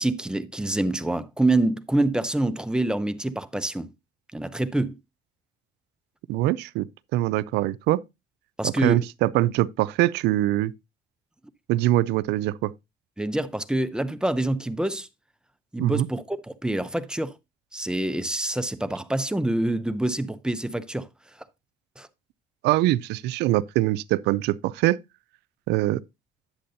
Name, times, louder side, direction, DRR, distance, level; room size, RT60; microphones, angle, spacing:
voice 1, 0.0-3.9 4.3-5.0 8.6-9.0 13.2-15.1 15.7-16.4 16.6-17.3 17.7-21.1 22.0-22.1, right 2 dB, 5° right, 0.6 m, -26 dB
voice 2, 6.3-8.0 8.6-10.7 11.7-12.7 15.8-16.1 22.6-25.0 25.7-26.0, right 16 dB, 85° right, 0.4 m, -23 dB
10.0 x 7.6 x 2.6 m
cardioid pair, 110°, 17 cm